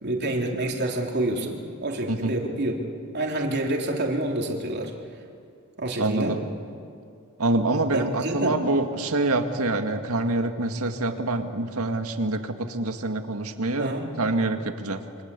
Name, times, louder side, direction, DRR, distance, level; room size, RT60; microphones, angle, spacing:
voice 1, 0.0-2.7 3.1-4.9 5.8-6.4 7.9-8.6 13.8-14.1, right 1 dB, 50° right, 1 dB, 3.2 m, -27 dB
voice 2, 6.0-6.4 7.4-15.0, right 2 dB, 85° right, 6 dB, 2.0 m, -26 dB
28.5 x 24.5 x 8.4 m, 2.4 s
head